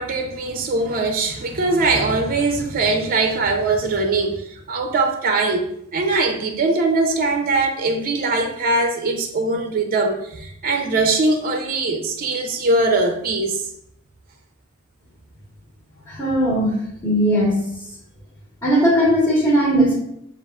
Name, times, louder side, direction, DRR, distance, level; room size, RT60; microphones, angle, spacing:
voice 1, 0.0-13.6, right 3 dB, 45° right, 4 dB, 0.5 m, -21 dB
voice 2, 16.1-16.7 17.0-17.6 18.6-20.0, equal, 20° left, -7 dB, 1.2 m, -18 dB
7.0 x 2.4 x 2.3 m, 0.75 s
head